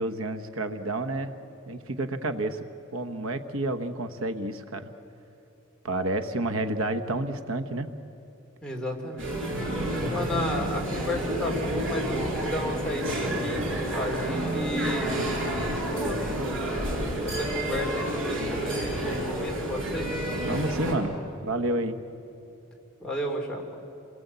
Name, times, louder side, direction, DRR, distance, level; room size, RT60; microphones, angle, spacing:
voice 1, 0.0-1.4 1.7-2.6 2.9-4.9 5.8-7.9 20.4-22.0, right 2 dB, 90° right, 9 dB, 1.2 m, -30 dB
voice 2, 8.6-9.5 10.1-15.3 15.6-16.7 17.2-20.1 23.0-23.6, left 1 dB, 5° left, -2 dB, 3.1 m, -33 dB
sound 1, 9.2-20.9, right 1 dB, 70° right, 6.6 m, -29 dB
28.5 x 21.0 x 8.2 m, 2.8 s
head